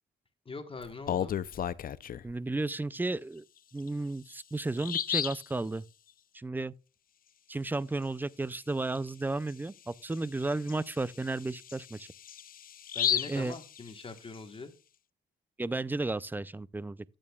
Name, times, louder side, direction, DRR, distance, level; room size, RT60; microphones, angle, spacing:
voice 1, 0.4-1.3 12.9-14.7, left 4 dB, 25° left, 1.3 m, -42 dB
Bird vocalization bird call bird song, 0.8-2.3 3.8-3.9 4.3-4.4 4.8-5.5 9.0-9.1 9.5-9.6 10.1-14.4, left 9 dB, 45° left, 0.5 m, -34 dB
voice 2, 2.2-3.4 3.7-5.8 6.3-6.7 7.5-12.1 13.3-13.5 15.6-17.1, right 2 dB, 10° right, 0.4 m, -33 dB
12.5 x 8.9 x 2.3 m
cardioid pair, 90°, 20 cm